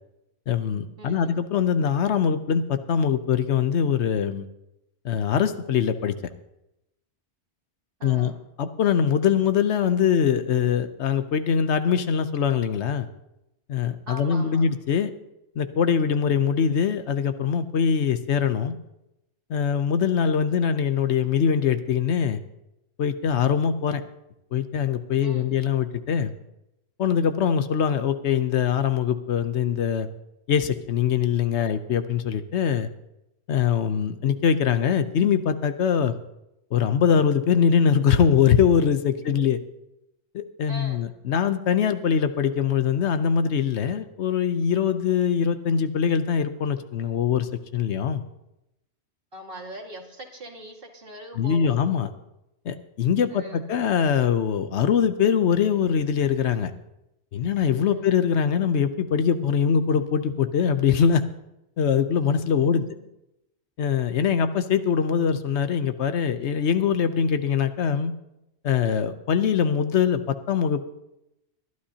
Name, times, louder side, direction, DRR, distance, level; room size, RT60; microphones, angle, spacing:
voice 1, 0.5-4.4 5.0-6.2 8.0-8.3 8.6-13.1 13.7-15.1 15.6-18.8 19.5-22.4 23.0-24.0 24.5-26.3 27.0-30.1 30.5-32.9 33.5-36.2 36.7-39.6 40.3-48.2 51.3-52.1 52.6-56.7 57.3-61.2 61.8-62.8 63.8-68.1 68.6-70.8, left 7 dB, 75° left, 10 dB, 1.0 m, -23 dB
voice 2, 1.0-1.4 8.0-8.4 14.1-14.7 20.4-20.6 25.2-25.6 39.3-39.4 40.7-41.0 49.3-51.7 53.3-53.6 57.9-58.2 62.6-63.1, right 1 dB, 50° right, 1 dB, 2.2 m, -41 dB
22.0 x 11.5 x 2.8 m, 0.88 s
omnidirectional pair, 1.2 m